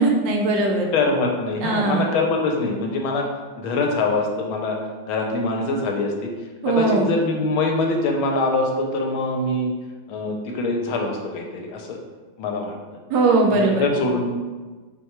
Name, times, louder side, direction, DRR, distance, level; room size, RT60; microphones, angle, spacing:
voice 1, 0.0-0.9 1.6-2.1 6.6-7.1 13.1-13.9, right 3 dB, 70° right, 1 dB, 1.2 m, -19 dB
voice 2, 0.9-3.3 3.6-4.8 5.1-6.3 6.7-9.7 10.1-12.0 12.4-12.7 13.5-14.4, left 2 dB, 85° left, 2 dB, 1.4 m, -23 dB
4.4 x 2.2 x 4.2 m, 1.3 s
omnidirectional pair, 2.2 m